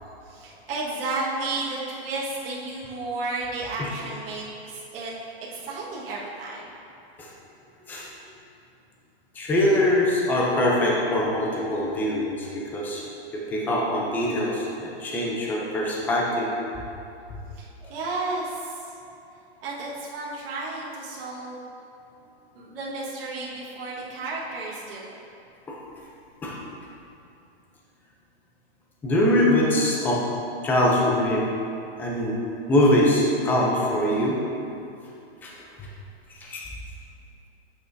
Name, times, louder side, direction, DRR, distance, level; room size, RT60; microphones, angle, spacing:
voice 1, 0.2-5.1 5.4-6.6 17.5-18.9 19.6-21.7 22.5-25.1, right 3 dB, 60° right, -6 dB, 1.6 m, -32 dB
voice 2, 9.3-13.0 13.3-16.5 17.8-17.9 25.7-25.8 26.4-26.5 29.0-30.2 30.6-31.5 32.0-32.4 32.7-34.4 35.4-35.5 35.8-35.9 36.3-36.6, left 1 dB, 5° left, -3 dB, 0.4 m, -23 dB
8.9 x 6.0 x 2.6 m, 2.7 s
hypercardioid pair, 150°, 32 cm